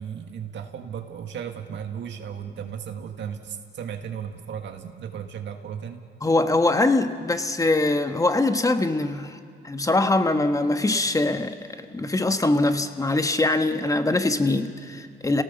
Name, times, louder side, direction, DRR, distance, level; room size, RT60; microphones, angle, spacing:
voice 1, 0.0-6.0 14.9-15.0, right 8 dB, 65° right, 5 dB, 1.7 m, -35 dB
voice 2, 6.2-9.4 9.6-15.4, left 2 dB, 15° left, 8 dB, 1.3 m, -23 dB
29.0 x 18.0 x 7.0 m, 2.3 s
cardioid pair, 90°, 20 cm